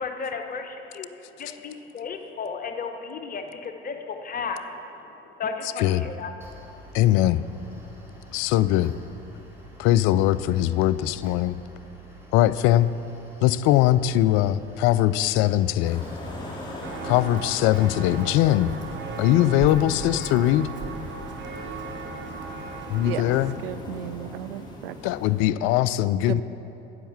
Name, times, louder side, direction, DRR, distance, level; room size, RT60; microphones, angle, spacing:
voice 1, 0.0-7.0 7.8-8.3, left 5 dB, 30° left, 6 dB, 0.8 m, -35 dB
voice 2, 5.6-6.1 6.9-7.4 8.3-8.9 9.8-11.6 12.3-12.9 13.4-16.0 17.0-18.7 19.2-20.7 22.9-23.6 25.0-26.4, left 13 dB, 45° left, 16 dB, 0.4 m, -21 dB
Mechanical fan, 6.4-18.4, right 1 dB, 10° right, 2.8 m, -49 dB
sound 1, 15.8-25.4, left 2 dB, 15° left, 2.8 m, -39 dB
Walk footsteps, 16.8-23.5, right 4 dB, 40° right, 1.1 m, -36 dB
voice 3, 23.6-25.0 26.3-26.4, right 13 dB, 70° right, 12 dB, 0.5 m, -34 dB
10.0 x 8.0 x 6.8 m, 3.0 s
figure-of-eight pair, 60°, 30 cm